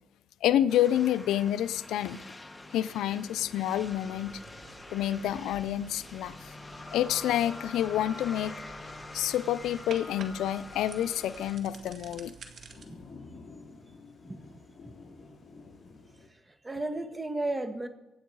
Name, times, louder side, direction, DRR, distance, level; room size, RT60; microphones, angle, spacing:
voice 1, 0.4-2.2 2.7-4.4 4.9-6.5 6.9-8.6 9.1-12.3, left 11 dB, 85° left, 14 dB, 0.6 m, -28 dB
sound 1, 0.7-11.6, left 2 dB, 15° left, 1.4 m, -45 dB
sound 2, 3.7-12.9, right 5 dB, 55° right, 2.0 m, -51 dB
Thunder / Rain, 9.8-16.3, left 3 dB, 35° left, 4.6 m, -52 dB
voice 2, 16.3-17.9, right 2 dB, 15° right, 8 dB, 1.6 m, -34 dB
24.5 x 9.3 x 4.7 m, 0.97 s
cardioid pair, 90°, 0 cm